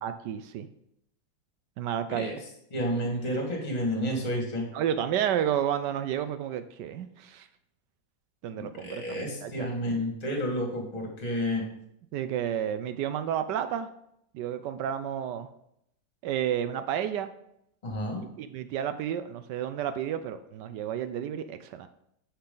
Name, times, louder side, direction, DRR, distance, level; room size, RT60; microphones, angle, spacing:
voice 1, 0.0-0.7 1.8-2.4 4.7-7.5 8.4-9.7 12.1-13.9 14.3-15.5 16.2-17.3 18.1-21.9, right 9 dB, 75° right, 11 dB, 1.1 m, -31 dB
voice 2, 2.7-4.7 8.8-11.7 17.8-18.2, equal, 20° left, 1 dB, 1.8 m, -30 dB
9.9 x 5.6 x 3.9 m, 0.75 s
omnidirectional pair, 2.1 m